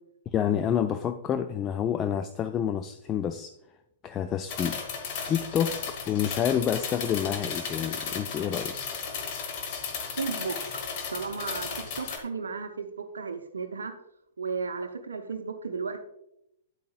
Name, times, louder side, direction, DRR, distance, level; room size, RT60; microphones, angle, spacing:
voice 1, 0.3-3.5 4.0-4.8 5.3-8.8, left 9 dB, 25° left, 0.3 m, -28 dB
sound 1, 4.5-12.2, left 5 dB, 40° left, 1.4 m, -35 dB
voice 2, 10.2-13.9 14.4-16.0, right 5 dB, 70° right, 0.6 m, -34 dB
9.7 x 8.5 x 2.4 m
figure-of-eight pair, 110°, 0 cm